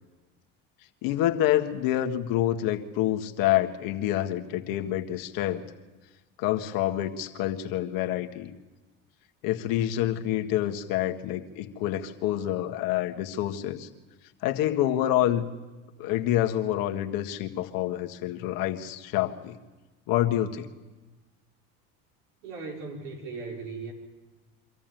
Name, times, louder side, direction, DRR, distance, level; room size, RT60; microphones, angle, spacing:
voice 1, 1.0-5.6 6.4-8.5 9.4-13.9 14.4-15.5 16.0-19.6 20.1-20.7, left 12 dB, 65° left, 4 dB, 1.8 m, -27 dB
voice 2, 22.4-23.9, right 4 dB, 85° right, -1 dB, 5.3 m, -37 dB
25.0 x 14.0 x 9.2 m, 1.2 s
supercardioid pair, 100°, 36 cm